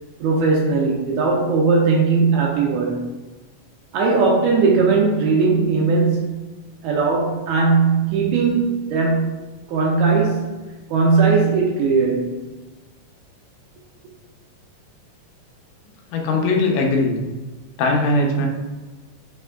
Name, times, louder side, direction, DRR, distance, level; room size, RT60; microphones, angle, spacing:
voice 1, 0.2-3.1 3.9-6.4 6.8-9.3 9.7-10.6 10.9-12.4, right 4 dB, 80° right, -2 dB, 1.8 m, -18 dB
voice 2, 16.1-17.2 17.8-18.5, left 2 dB, 85° left, 0 dB, 2.3 m, -19 dB
5.0 x 3.4 x 2.2 m, 1.2 s
omnidirectional pair, 3.7 m